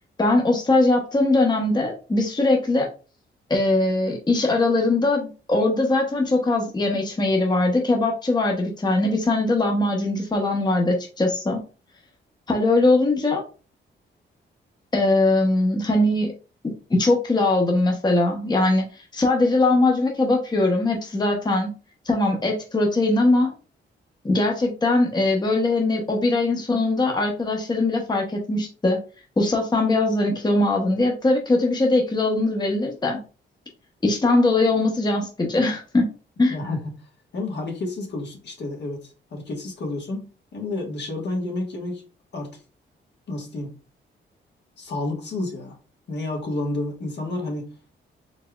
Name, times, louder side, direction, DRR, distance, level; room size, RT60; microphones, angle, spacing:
voice 1, 0.2-2.9 3.5-11.6 12.5-13.4 14.9-16.3 16.6-21.7 22.1-23.5 24.2-29.0 29.4-33.2 34.0-36.1 36.4-36.6, left 2 dB, 20° left, 1 dB, 0.9 m, -21 dB
voice 2, 36.5-36.8 37.3-39.0 39.3-42.0 42.3-42.5 43.3-43.7 44.8-45.8 46.1-47.7, left 2 dB, 60° left, 1 dB, 1.3 m, -30 dB
4.1 x 3.4 x 2.3 m, 0.34 s
cardioid pair, 80°, 20 cm